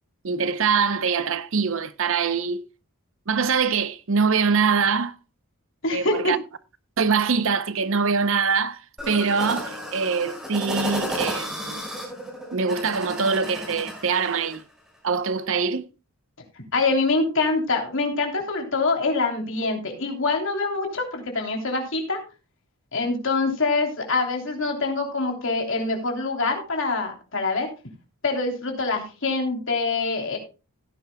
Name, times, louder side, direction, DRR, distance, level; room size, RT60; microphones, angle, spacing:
voice 1, 0.2-2.6 3.3-5.1 5.9-6.4 7.0-8.8 9.1-11.8 12.5-14.6 15.0-15.9, right 5 dB, 60° right, 0.7 m, -23 dB
voice 2, 5.8-6.3 16.7-22.2 22.9-27.7 28.2-30.4, left 3 dB, 60° left, 3.2 m, -25 dB
sound 1, 9.0-14.6, equal, ahead, 5.0 m, -33 dB
17.0 x 10.5 x 2.2 m
head